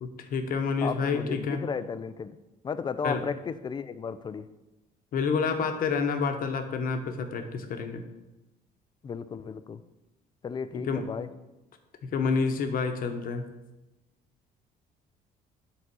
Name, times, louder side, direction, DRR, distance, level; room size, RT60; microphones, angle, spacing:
voice 1, 0.0-1.6 3.0-3.2 5.1-8.0 10.9-11.1 12.1-13.4, left 5 dB, 55° left, 6 dB, 1.1 m, -28 dB
voice 2, 0.8-2.4 2.6-4.5 9.0-9.8 10.4-11.3, left 6 dB, 25° left, 13 dB, 0.4 m, -34 dB
8.5 x 4.0 x 6.1 m, 1.0 s
cardioid pair, 110°, 17 cm